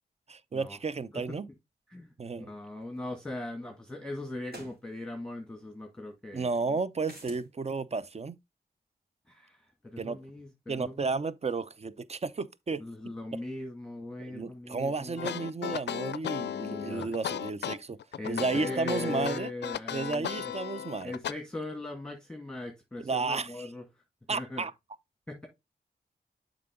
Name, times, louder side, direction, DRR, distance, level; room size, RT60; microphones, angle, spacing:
voice 1, 0.3-1.5 2.2-2.5 6.3-8.4 10.0-10.2 10.7-12.8 14.2-18.0 18.3-19.5 19.9-21.1 23.0-23.7 24.3-24.7, right 4 dB, 40° right, 0.6 m, -32 dB
voice 2, 2.4-6.5 9.3-11.0 12.8-15.3 16.5-17.1 18.2-20.5 21.0-23.8 24.3-24.7 25.3-25.5, left 2 dB, 5° left, 1.9 m, -39 dB
sound 1, 3.1-3.2 4.5-4.8 7.0-7.5, right 1 dB, 65° right, 3.8 m, -46 dB
sound 2, 15.2-21.3, left 10 dB, 90° left, 0.4 m, -35 dB
7.4 x 4.8 x 3.6 m
cardioid pair, 65°, 17 cm